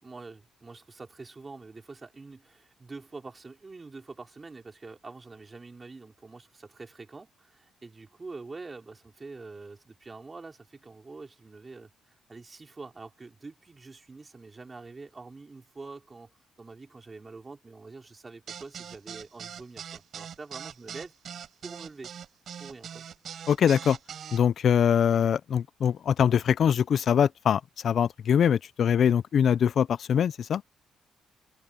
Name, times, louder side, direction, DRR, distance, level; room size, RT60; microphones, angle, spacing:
voice 1, 0.0-11.9 12.3-16.3 16.6-21.1 21.6-22.1 22.6-23.1, right 3 dB, 25° right, 4.8 m, -45 dB
sound 1, 18.5-24.4, right 8 dB, 60° right, 0.7 m, -41 dB
voice 2, 23.5-24.0 24.3-30.6, left 8 dB, 60° left, 0.5 m, -23 dB
cardioid pair, 90°, 0 cm